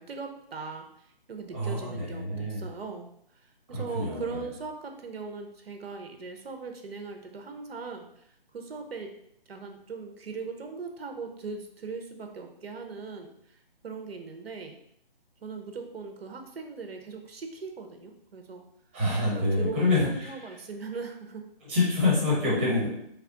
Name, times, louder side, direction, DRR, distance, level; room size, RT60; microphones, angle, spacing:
voice 1, 0.0-3.1 3.4-8.2 8.5-9.1 9.5-14.8 15.4-18.6 19.3-21.4, right 4 dB, 90° right, 4 dB, 0.7 m, -39 dB
voice 2, 1.5-2.6 3.7-4.2 18.9-20.1 21.7-22.9, left 2 dB, 15° right, -7 dB, 0.8 m, -26 dB
3.2 x 2.4 x 3.7 m, 0.74 s
hypercardioid pair, 170°, 29 cm